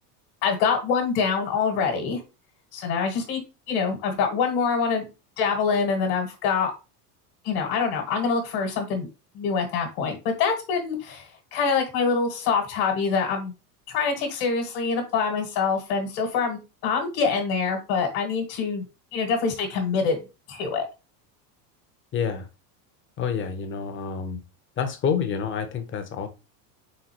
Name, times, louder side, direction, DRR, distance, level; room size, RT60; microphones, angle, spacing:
voice 1, 0.4-2.2 2.7-3.4 3.7-5.0 5.4-6.7 7.4-9.1 9.3-13.5 13.9-18.8 19.1-20.2 20.5-20.8, left 5 dB, 60° left, 1.4 m, -25 dB
voice 2, 22.1-22.5 23.2-24.4 24.8-26.3, left 7 dB, 25° left, 0.7 m, -28 dB
4.0 x 3.7 x 2.9 m
supercardioid pair, 125°, 48 cm